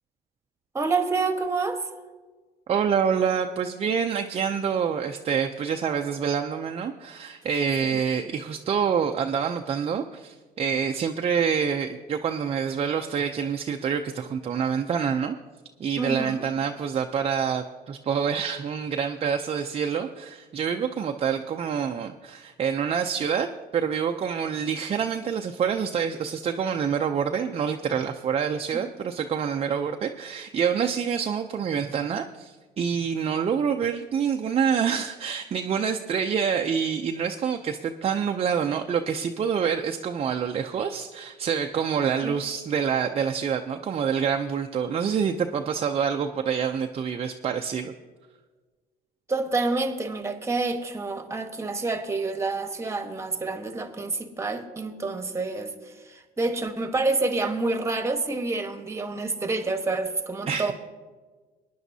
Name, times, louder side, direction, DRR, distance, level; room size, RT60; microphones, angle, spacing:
voice 1, 0.7-1.9 16.0-16.4 28.7-28.8 42.2-42.4 49.3-60.7, right 3 dB, 15° right, 7 dB, 1.2 m, -28 dB
voice 2, 2.7-15.4 15.8-23.5 23.7-47.9 60.5-60.7, right 7 dB, 35° right, 4 dB, 0.5 m, -27 dB
21.0 x 10.5 x 2.7 m, 1.4 s
cardioid pair, 110°, 17 cm